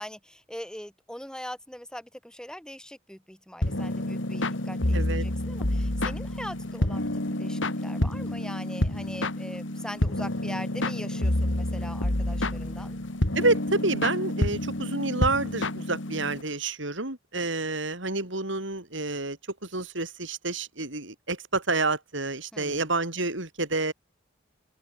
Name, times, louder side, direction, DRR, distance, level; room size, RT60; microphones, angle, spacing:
voice 1, 0.0-13.0 22.5-22.9, equal, 5° left, 3.1 m, -42 dB
sound 1, 3.6-16.4, left 1 dB, 70° left, 2.4 m, -28 dB
voice 2, 4.9-5.3 13.3-23.9, right 2 dB, 70° right, 5.3 m, -29 dB
open air
head